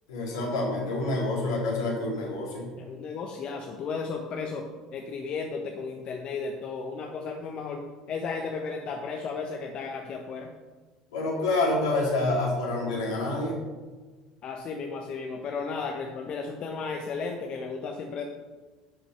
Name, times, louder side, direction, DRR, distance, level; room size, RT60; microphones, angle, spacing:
voice 1, 0.1-2.7 11.1-13.5, left 2 dB, 75° left, -3 dB, 3.2 m, -27 dB
voice 2, 2.8-10.5 14.4-18.2, left 4 dB, 50° left, 3 dB, 1.1 m, -34 dB
11.0 x 5.7 x 5.7 m, 1.3 s
hypercardioid pair, 65°, 2 cm